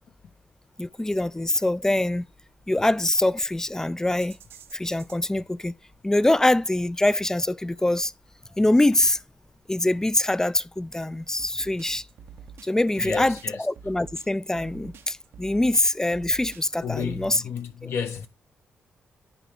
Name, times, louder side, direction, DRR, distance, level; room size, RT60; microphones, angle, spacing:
voice 1, 0.8-2.3 2.7-4.4 4.7-5.7 6.0-8.1 8.6-9.2 9.7-12.1 12.6-17.4 17.8-17.9, left 1 dB, 10° left, 0.3 m, -24 dB
sound 1, 0.9-17.4, right 6 dB, 70° right, 0.7 m, -48 dB
voice 2, 13.0-13.7 16.8-18.3, left 6 dB, 70° left, 1.2 m, -32 dB
9.9 x 3.7 x 3.4 m
supercardioid pair, 50°, 4 cm